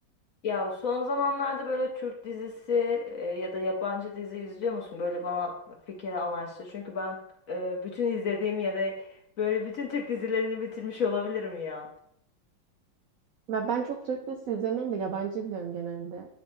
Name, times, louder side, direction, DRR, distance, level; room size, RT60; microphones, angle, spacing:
voice 1, 0.4-7.2 7.5-11.9, left 4 dB, 60° left, 0 dB, 1.0 m, -31 dB
voice 2, 13.5-16.3, right 7 dB, 85° right, 2 dB, 0.7 m, -31 dB
9.5 x 3.2 x 3.1 m, 0.72 s
omnidirectional pair, 2.2 m